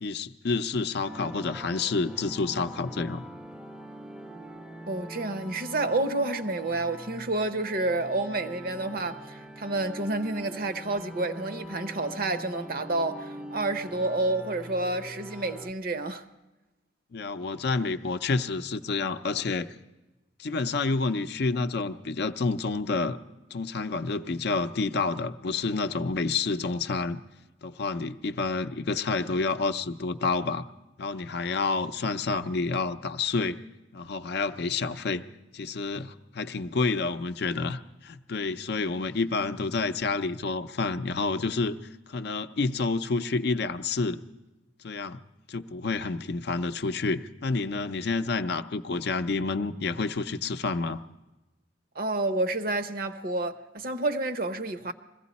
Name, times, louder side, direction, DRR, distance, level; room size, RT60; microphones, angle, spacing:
voice 1, 0.0-3.2 17.1-19.7 20.4-23.2 23.5-27.2 27.6-30.7 31.0-33.6 33.9-35.2 35.5-41.7 42.1-44.2 44.8-45.2 45.5-51.0, left 3 dB, 55° left, 0.5 m, -29 dB
sound 1, 1.0-15.7, right 1 dB, 5° right, 0.5 m, -43 dB
voice 2, 4.9-16.2 52.0-54.9, right 2 dB, 50° right, 0.7 m, -29 dB
21.5 x 15.5 x 4.1 m
head